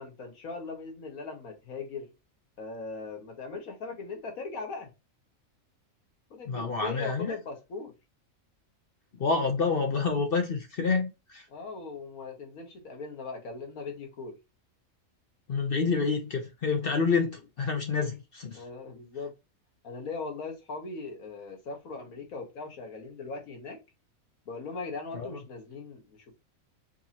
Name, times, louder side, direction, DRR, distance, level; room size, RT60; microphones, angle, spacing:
voice 1, 0.0-2.1 2.6-4.9 6.3-7.9 11.5-14.4 18.5-19.3 19.8-23.8 24.4-26.4, left 4 dB, 80° left, 1.7 m, -39 dB
voice 2, 6.5-7.3 9.2-11.4 15.5-17.3 17.6-18.6 25.1-25.4, left 4 dB, 50° left, 0.8 m, -28 dB
4.6 x 2.7 x 2.8 m
omnidirectional pair, 1.5 m